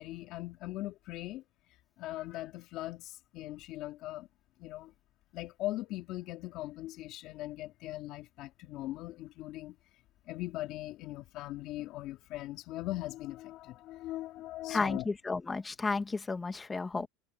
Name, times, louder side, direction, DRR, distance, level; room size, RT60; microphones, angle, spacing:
voice 1, 0.0-1.4 2.0-4.3 4.6-4.9 5.3-9.8 10.3-15.1 17.0-17.1, left 16 dB, 55° left, 3.3 m, -40 dB
voice 2, 14.7-17.1, left 3 dB, 15° left, 2.0 m, -33 dB
supercardioid pair, 130°, 0 cm